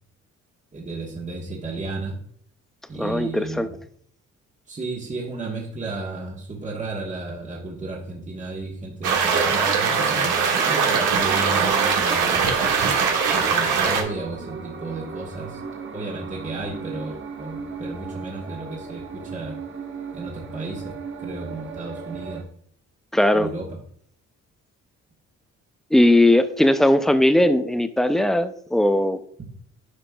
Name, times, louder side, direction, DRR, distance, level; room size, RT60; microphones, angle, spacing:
voice 1, 0.7-2.2 2.9-3.8 4.7-12.6 13.3-15.6 15.9-19.5 20.1-20.9 21.2-22.4 23.3-23.7 29.4-29.5, right 3 dB, 25° right, -2 dB, 1.4 m, -33 dB
voice 2, 3.0-3.7 23.1-23.5 25.9-29.2, left 1 dB, ahead, 11 dB, 0.4 m, -18 dB
sound 1, 9.0-14.0, right 6 dB, 85° right, 1.3 m, -21 dB
sound 2, 11.8-22.4, right 5 dB, 40° right, 1.1 m, -37 dB
9.8 x 5.1 x 2.3 m, 0.63 s
cardioid pair, 90°, 30 cm